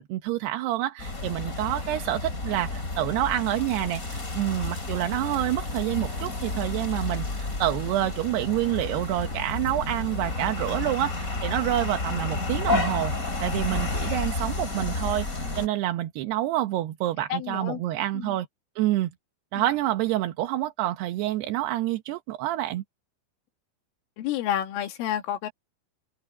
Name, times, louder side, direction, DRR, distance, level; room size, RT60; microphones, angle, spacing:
voice 1, 0.0-13.1 13.4-15.3 15.6-18.5 18.8-19.1 19.5-22.8, right 14 dB, 70° right, 2.8 m, -27 dB
sound 1, 1.0-15.7, left 3 dB, 20° left, 2.9 m, -31 dB
voice 2, 17.3-17.8 18.1-18.4 19.6-19.7 24.2-25.5, left 11 dB, 90° left, 4.7 m, -30 dB
omnidirectional pair, 5.6 m